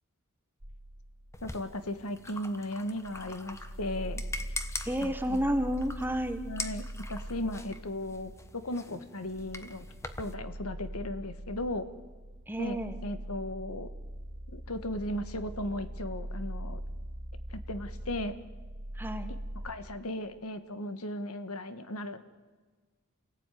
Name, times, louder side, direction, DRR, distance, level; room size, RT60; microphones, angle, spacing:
sound 1, 0.6-1.6 2.2-2.3 2.9-19.7, right 1 dB, 80° right, 3.1 m, -42 dB
sound 2, 1.3-10.3, left 3 dB, 15° left, 1.1 m, -43 dB
voice 1, 1.4-4.2 5.0-5.5 6.4-9.9 10.2-11.9 12.6-13.9 14.5-16.8 17.5-18.3 19.3-19.4 19.6-22.2, left 1 dB, 75° left, 10 dB, 1.6 m, -36 dB
voice 2, 4.8-6.4 12.5-13.0 19.0-19.3, equal, 10° right, 8 dB, 1.3 m, -31 dB
28.5 x 17.5 x 9.3 m, 1.4 s
head